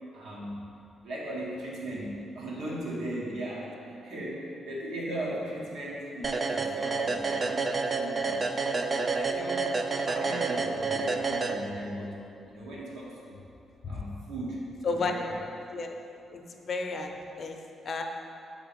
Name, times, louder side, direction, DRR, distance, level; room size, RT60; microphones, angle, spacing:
voice 1, 0.1-0.6 1.0-8.4 8.9-9.7 10.0-12.2 12.5-13.3 13.9-15.4, right 1 dB, 85° right, -5 dB, 1.6 m, -37 dB
sound 1, 6.2-12.0, right 3 dB, 30° right, 0.3 m, -29 dB
voice 2, 16.3-17.6 17.8-18.0, left 4 dB, 45° left, 3 dB, 0.5 m, -32 dB
7.1 x 3.7 x 5.2 m, 2.6 s
cardioid pair, 150°, 0 cm